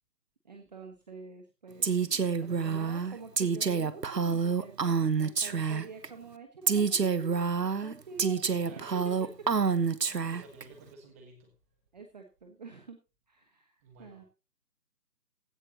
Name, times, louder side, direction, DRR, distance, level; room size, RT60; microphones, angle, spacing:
voice 1, 0.4-4.9 5.2-9.3 11.9-13.0 13.3-14.2, right 3 dB, 25° right, 1.2 m, -47 dB
Female speech woman speaking, 1.8-6.1 6.7-10.6, right 5 dB, 75° right, 1.3 m, -28 dB
voice 2, 8.3-9.4 10.1-11.8 13.8-14.2, right 3 dB, 10° right, 1.4 m, -53 dB
16.0 x 11.5 x 2.9 m
figure-of-eight pair, 160°, 49 cm